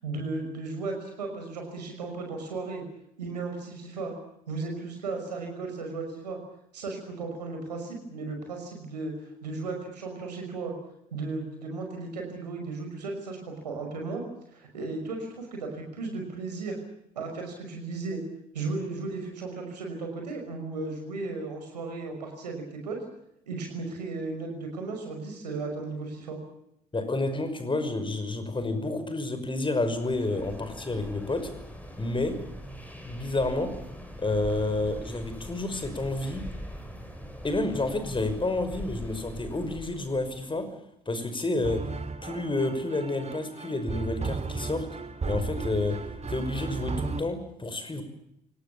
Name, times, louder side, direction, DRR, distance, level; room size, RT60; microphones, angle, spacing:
voice 1, 0.0-2.8 3.2-4.1 4.5-6.4 6.7-9.1 9.4-10.7 11.1-14.2 14.5-16.8 17.1-18.2 18.5-23.0 23.5-26.4 30.3-30.5, right 3 dB, 85° right, 3 dB, 5.7 m, -35 dB
voice 2, 26.9-31.5 32.0-32.4 33.1-33.7 34.2-36.4 37.4-40.7 41.1-41.8 42.2-44.9 45.2-46.0 46.3-48.0, left 2 dB, 25° left, 9 dB, 5.8 m, -29 dB
sound 1, 29.8-40.6, equal, 5° left, 7.1 m, -42 dB
sound 2, 41.6-47.2, right 4 dB, 30° right, 3.1 m, -35 dB
29.5 x 18.5 x 7.2 m, 0.79 s
figure-of-eight pair, 50°, 21 cm